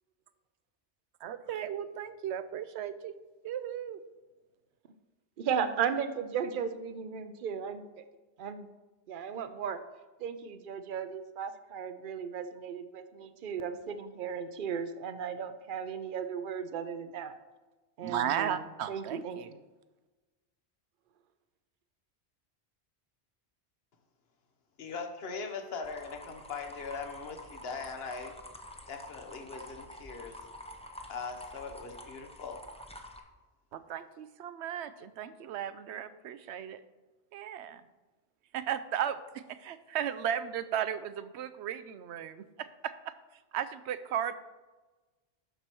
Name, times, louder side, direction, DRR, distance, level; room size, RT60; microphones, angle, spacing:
voice 1, 1.2-3.2 3.4-4.0 18.0-19.5 33.7-36.8 37.3-37.8 38.5-43.1 43.5-44.3, right 9 dB, 80° right, 13 dB, 0.9 m, -35 dB
voice 2, 5.4-7.9 8.4-8.7 9.1-9.8 10.2-17.3 18.0-19.4, right 7 dB, 55° right, 10 dB, 0.7 m, -35 dB
voice 3, 24.8-28.3 28.9-30.4 31.1-32.6, left 4 dB, 65° left, 4 dB, 1.2 m, -40 dB
Solar water cascade, 25.8-33.2, left 1 dB, 5° left, 0.7 m, -48 dB
12.0 x 4.6 x 4.5 m, 1.2 s
omnidirectional pair, 1.1 m